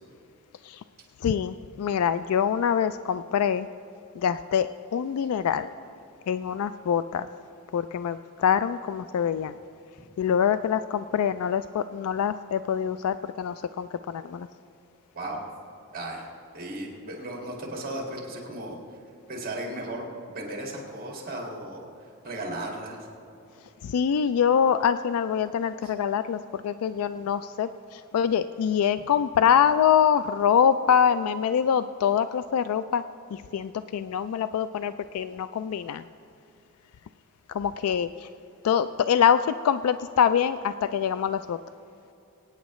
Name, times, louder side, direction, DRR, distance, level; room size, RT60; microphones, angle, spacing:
voice 1, 1.2-3.7 4.2-5.7 6.3-7.3 7.7-9.6 10.2-14.5 23.8-33.0 33.3-36.0 37.5-38.3 38.6-41.6, left 8 dB, 75° left, 13 dB, 0.3 m, -25 dB
voice 2, 15.1-15.4 15.9-16.3 16.5-19.0 19.3-23.1 25.8-25.9, right 1 dB, 40° right, -1 dB, 1.9 m, -36 dB
23.0 x 9.3 x 3.1 m, 2.8 s
head